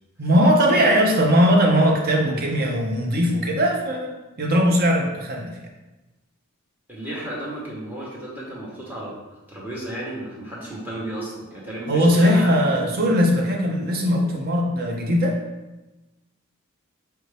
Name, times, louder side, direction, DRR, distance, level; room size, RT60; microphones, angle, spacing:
voice 1, 0.2-5.6 11.9-15.4, equal, 40° right, 1 dB, 0.6 m, -19 dB
voice 2, 6.9-12.9, right 1 dB, 10° right, -6 dB, 0.9 m, -34 dB
4.4 x 2.6 x 3.2 m, 1.0 s
head